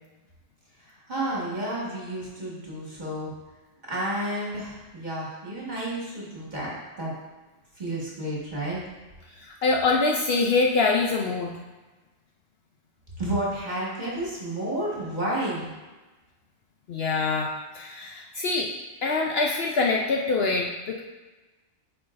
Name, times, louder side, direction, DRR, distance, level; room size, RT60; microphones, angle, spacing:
voice 1, 0.8-3.3 3.9-7.1 7.8-8.8 13.2-15.7, right 1 dB, 35° right, -6 dB, 1.8 m, -31 dB
voice 2, 9.4-11.6 16.9-18.7 19.0-21.0, left 3 dB, 60° left, 0 dB, 0.7 m, -24 dB
9.4 x 4.5 x 2.5 m, 1.2 s
omnidirectional pair, 1.3 m